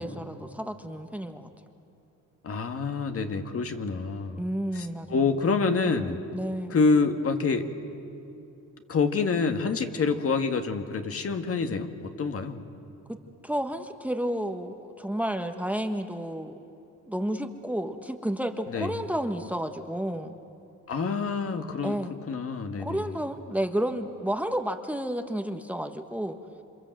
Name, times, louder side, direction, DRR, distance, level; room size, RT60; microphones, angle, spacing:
voice 1, 0.0-1.5 4.4-5.2 6.3-6.7 13.1-13.2 13.4-16.6 17.1-20.3 21.8-22.2 22.8-26.4, right 1 dB, 5° right, 6 dB, 1.3 m, -31 dB
voice 2, 2.4-4.4 4.7-6.2 6.7-7.7 8.9-12.6 18.7-18.9 20.9-22.0 22.3-23.0, left 4 dB, 50° left, 6 dB, 1.8 m, -27 dB
28.0 x 26.0 x 7.8 m, 2.7 s
cardioid pair, 90°, 30 cm